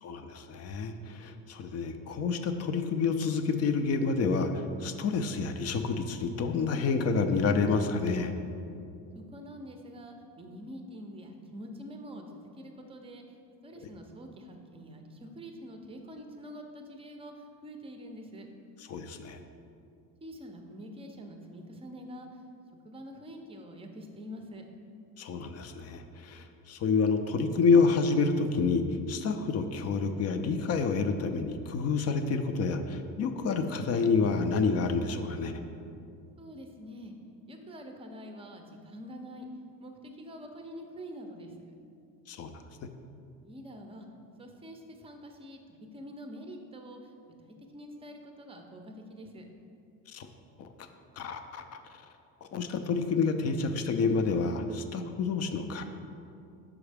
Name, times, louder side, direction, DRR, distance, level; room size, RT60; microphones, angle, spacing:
voice 1, 0.0-8.3 18.9-19.4 25.2-35.5 42.3-42.5 50.1-50.3 50.6-50.9 51.2-51.8 52.5-55.8, left 4 dB, 40° left, 7 dB, 0.4 m, -28 dB
voice 2, 9.1-13.4 13.6-18.5 20.2-22.4 22.8-24.6 36.4-37.1 37.5-39.5 39.8-41.7 43.4-44.1 44.4-47.1 47.4-49.4, equal, 15° right, 4 dB, 0.5 m, -46 dB
6.2 x 4.8 x 3.4 m, 2.5 s
cardioid pair, 115°, 38 cm